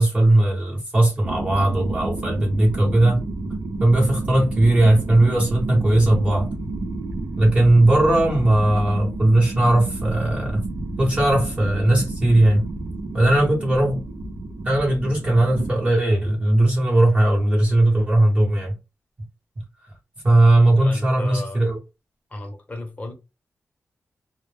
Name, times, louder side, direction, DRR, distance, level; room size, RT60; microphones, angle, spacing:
voice 1, 0.0-3.2 3.8-6.5 7.4-10.6 11.0-12.6 13.1-14.0 14.6-18.7 20.2-21.8, right 1 dB, 25° right, 1.0 m, -18 dB
sound 1, 1.2-15.7, right 2 dB, 70° right, 0.4 m, -30 dB
voice 2, 20.7-21.6 22.3-23.1, left 1 dB, 25° left, 0.7 m, -34 dB
2.1 x 2.1 x 3.2 m
wide cardioid pair, 120°, 5 cm